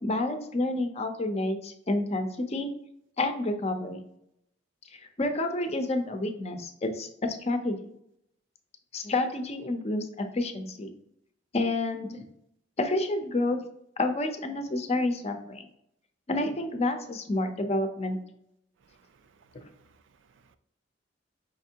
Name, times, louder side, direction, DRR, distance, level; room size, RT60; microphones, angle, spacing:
voice 1, 0.0-2.7 3.2-4.0 4.9-7.8 8.9-11.0 11.5-12.2 12.8-13.6 14.0-15.7 16.3-18.2, left 2 dB, 35° left, 7 dB, 0.6 m, -29 dB
voice 2, 18.8-20.6, right 4 dB, 80° right, 10 dB, 0.4 m, -63 dB
5.2 x 3.4 x 2.8 m, 0.77 s
head